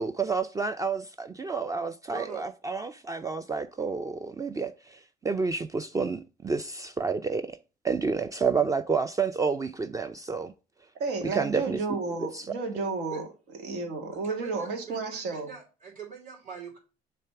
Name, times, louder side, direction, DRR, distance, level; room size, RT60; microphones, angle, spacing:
voice 1, 0.0-4.7 5.2-7.6 7.8-10.5 11.3-11.8 12.3-12.4, right 5 dB, 20° right, 0.4 m, -29 dB
voice 2, 2.1-2.5 13.1-13.2 14.1-16.8, right 6 dB, 50° right, 3.3 m, -43 dB
voice 3, 11.0-13.2 13.6-15.5, right 3 dB, 90° right, 2.0 m, -32 dB
6.7 x 3.4 x 5.7 m
cardioid pair, 110°, 17 cm